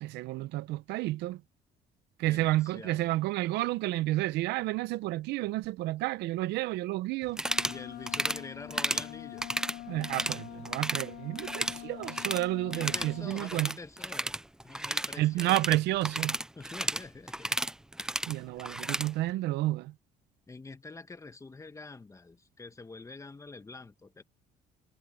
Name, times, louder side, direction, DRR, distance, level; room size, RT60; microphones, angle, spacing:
voice 1, 0.0-1.4 2.2-7.4 9.9-13.7 15.2-16.4 18.3-19.9, right 17 dB, 85° right, 0.7 m, -30 dB
voice 2, 2.2-3.2 7.6-9.5 12.6-15.8 16.5-17.6 20.5-24.2, left 3 dB, 20° left, 1.3 m, -46 dB
sound 1, 7.3-7.8 8.1-8.4 8.7-9.1 9.4-10.4 10.7-11.1 11.4-12.5 12.7-19.1, right 1 dB, 5° right, 0.3 m, -33 dB
Wind instrument woodwind instrument, 7.4-13.4, left 17 dB, 60° left, 0.6 m, -45 dB
cardioid pair, 110°, 17 cm